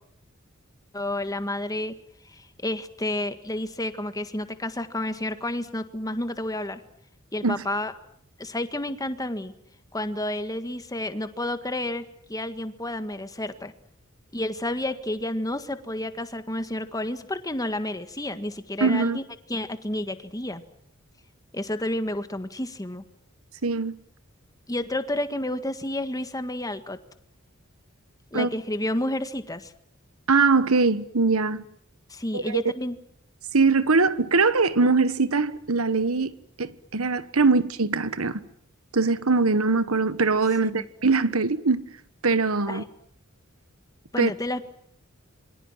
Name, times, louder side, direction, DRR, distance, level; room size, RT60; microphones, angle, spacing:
voice 1, 0.9-1.9 2.3-6.8 7.3-7.9 8.4-9.5 9.9-13.7 14.3-19.2 19.5-20.6 21.5-23.0 24.7-27.0 28.3-29.7 32.1-33.0 40.7-40.9 42.7-42.9 44.1-44.6, left 1 dB, 15° left, 1.7 m, -30 dB
voice 2, 18.8-19.2 23.6-23.9 28.3-28.5 30.3-31.6 32.3-32.6 33.5-38.4 38.9-41.8 42.2-42.8 44.2-44.3, right 4 dB, 80° right, 1.3 m, -22 dB
27.0 x 24.0 x 7.5 m
head